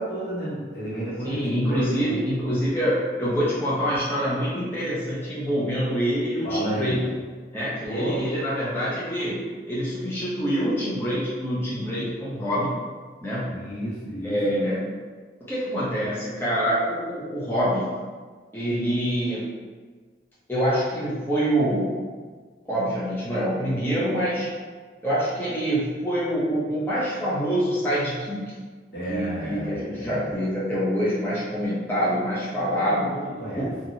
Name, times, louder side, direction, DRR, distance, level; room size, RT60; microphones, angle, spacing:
voice 1, 0.0-2.2 6.4-7.0 7.8-8.2 13.4-14.4 28.9-30.3 32.7-33.7, right 1 dB, 75° left, -8 dB, 1.1 m, -32 dB
voice 2, 1.2-7.1 7.5-12.8 13.2-13.5 14.2-15.0 15.5-17.9 18.5-19.5 20.5-22.0 22.7-24.5 25.0-28.6 29.1-33.1 33.6-33.7, equal, 15° left, -9 dB, 0.6 m, -26 dB
3.0 x 2.5 x 2.7 m, 1.5 s
head